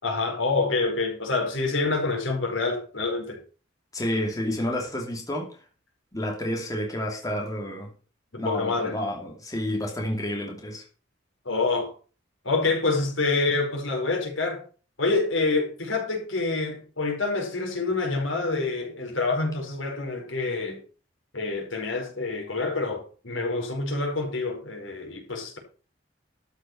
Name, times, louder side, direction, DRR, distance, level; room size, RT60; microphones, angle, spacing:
voice 1, 0.0-3.4 8.3-8.9 11.4-11.9 12.4-14.6 15.0-20.8 21.3-25.6, left 3 dB, 90° left, 4.8 m, -27 dB
voice 2, 3.9-5.6 6.1-7.9 8.4-10.8, left 1 dB, 20° left, 2.9 m, -30 dB
13.0 x 6.5 x 5.9 m
head